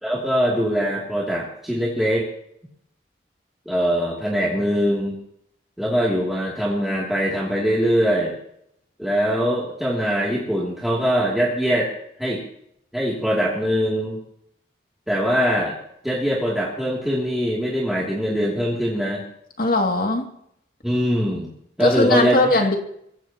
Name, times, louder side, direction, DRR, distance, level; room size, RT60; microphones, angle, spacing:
voice 1, 0.0-2.3 3.7-5.2 5.8-8.4 9.0-11.9 12.2-12.4 12.9-14.2 15.1-15.8 16.0-19.2 20.8-21.5 21.8-22.6, equal, ahead, -6 dB, 2.9 m, -22 dB
voice 2, 19.6-20.3 21.8-22.8, left 2 dB, 50° left, 2 dB, 2.5 m, -19 dB
24.0 x 16.5 x 3.0 m, 0.73 s
head